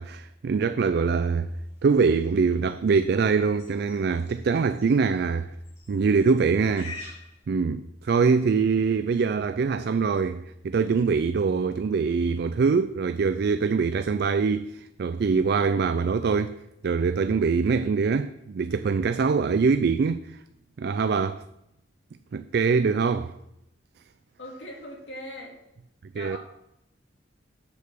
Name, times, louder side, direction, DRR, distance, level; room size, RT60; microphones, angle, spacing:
voice 1, 0.0-1.5 1.8-5.5 5.9-7.0 7.5-16.6 16.8-20.4 20.8-21.4 22.3-23.3 26.2-26.4, right 5 dB, 55° right, 0.3 m, -23 dB
sound 1, 1.5-7.4, left 3 dB, 40° left, 4.3 m, -48 dB
voice 2, 24.4-25.6 26.1-26.4, left 1 dB, 70° left, 2.4 m, -41 dB
7.8 x 6.6 x 6.8 m
head